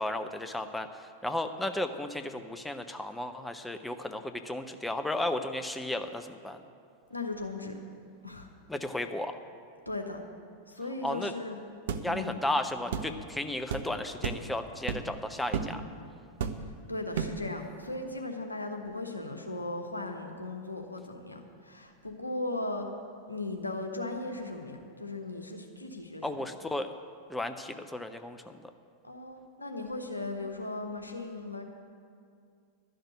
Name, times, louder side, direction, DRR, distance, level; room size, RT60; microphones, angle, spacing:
voice 1, 0.0-6.6 8.7-9.4 11.0-11.3 12.0-15.8 26.2-27.0 27.3-28.7, left 1 dB, 5° left, 8 dB, 0.6 m, -34 dB
voice 2, 7.1-7.7 8.2-8.5 9.9-10.2 10.7-11.6 12.0-12.4 16.9-22.9 23.3-26.4 29.0-31.6, left 2 dB, 85° left, 3 dB, 1.1 m, -37 dB
sound 1, 11.9-12.1 12.9-13.1 13.7-13.9 14.2-14.5 14.9-15.1 15.5-15.8 16.4-16.7 17.1-17.4, right 7 dB, 55° right, 0.6 m, -32 dB
11.5 x 6.6 x 9.5 m, 2.3 s
figure-of-eight pair, 90°, 0 cm